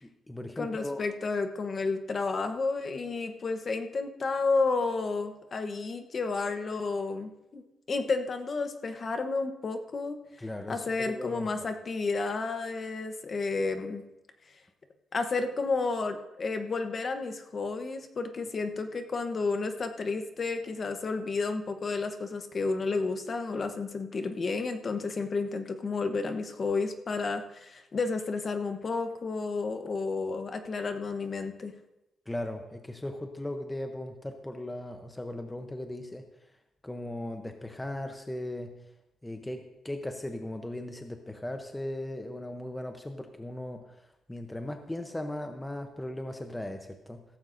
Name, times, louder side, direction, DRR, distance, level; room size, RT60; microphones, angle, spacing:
voice 1, 0.0-1.0 10.4-11.5 32.3-36.3 36.8-38.8 39.2-44.0 44.3-47.2, left 1 dB, 10° left, 5 dB, 0.7 m, -38 dB
voice 2, 0.6-7.6 7.9-10.2 10.7-14.0 15.1-31.7, left 3 dB, 35° left, 7 dB, 0.9 m, -31 dB
16.5 x 14.5 x 2.6 m, 0.92 s
cardioid pair, 165°, 0 cm